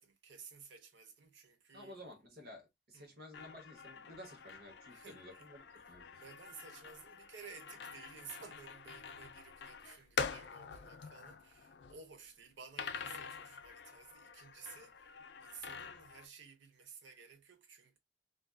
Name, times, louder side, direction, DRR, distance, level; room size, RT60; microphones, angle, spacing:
voice 1, 0.0-2.0 2.9-3.1 4.9-5.5 6.2-18.0, right 5 dB, 85° right, 0.7 m, -55 dB
voice 2, 1.7-6.2 9.9-10.0, left 1 dB, 60° right, 1.0 m, -53 dB
sound 1, 3.3-12.0 12.8-16.3, left 5 dB, 65° left, 0.4 m, -46 dB
2.6 x 2.4 x 2.2 m
head